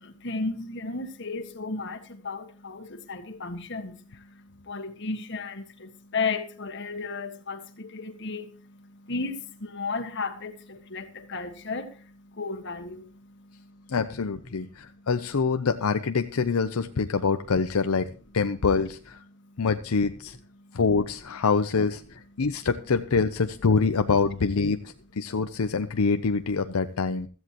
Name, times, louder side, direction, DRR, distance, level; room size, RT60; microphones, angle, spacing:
voice 1, 0.0-3.9 4.7-8.4 9.1-11.9 12.4-13.1, left 4 dB, 55° left, 1.6 m, -34 dB
voice 2, 13.9-18.1 18.3-19.2 19.6-20.4 20.7-27.3, left 4 dB, 85° left, 0.6 m, -25 dB
16.0 x 13.5 x 3.0 m
head